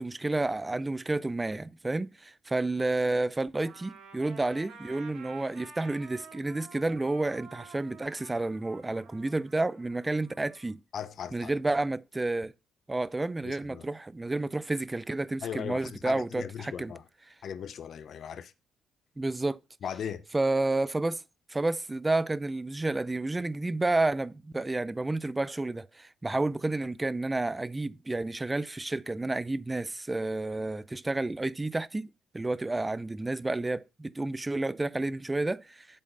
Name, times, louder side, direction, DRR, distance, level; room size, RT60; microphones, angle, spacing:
voice 1, 0.0-10.8 11.3-12.5 12.9-16.9 19.2-19.6 20.3-21.2 21.5-32.1 32.3-35.9, right 2 dB, 15° right, 0.5 m, -30 dB
Trumpet, 3.6-10.7, right 4 dB, 85° right, 3.3 m, -51 dB
voice 2, 10.9-11.5 13.4-13.9 15.4-17.0 17.4-18.5 19.8-20.2, left 8 dB, 60° left, 0.8 m, -38 dB
7.8 x 7.6 x 3.9 m
cardioid pair, 90°, 0 cm